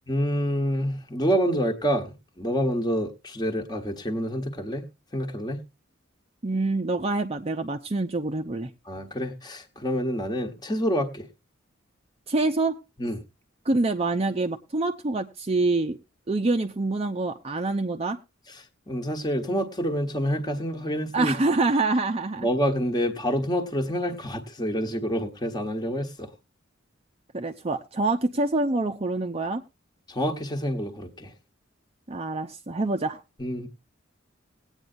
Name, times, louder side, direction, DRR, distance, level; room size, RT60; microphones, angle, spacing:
voice 1, 0.1-4.9 5.1-5.6 8.9-11.3 13.0-13.2 18.5-21.3 22.4-26.3 30.1-31.3 33.4-33.7, equal, 20° left, 1.3 m, -27 dB
voice 2, 6.4-8.7 12.3-12.8 13.6-16.0 16.3-18.2 21.1-22.5 27.3-29.6 32.1-33.2, right 2 dB, 30° right, 0.7 m, -26 dB
19.5 x 9.0 x 2.6 m
head